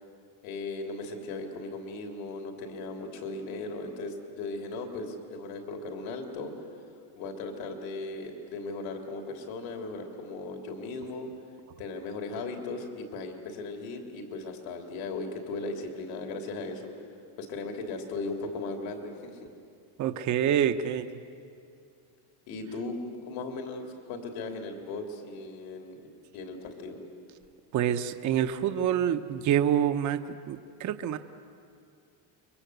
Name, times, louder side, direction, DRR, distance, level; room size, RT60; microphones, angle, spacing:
voice 1, 0.4-6.5 7.2-11.3 11.8-16.9 17.4-19.4 22.5-26.0 26.3-27.0, left 3 dB, 70° left, 3 dB, 3.6 m, -37 dB
voice 2, 20.0-21.1 27.7-30.2 30.5-31.2, right 10 dB, 35° right, 8 dB, 0.9 m, -26 dB
30.0 x 23.5 x 8.1 m, 2.4 s
cardioid pair, 160°, 48 cm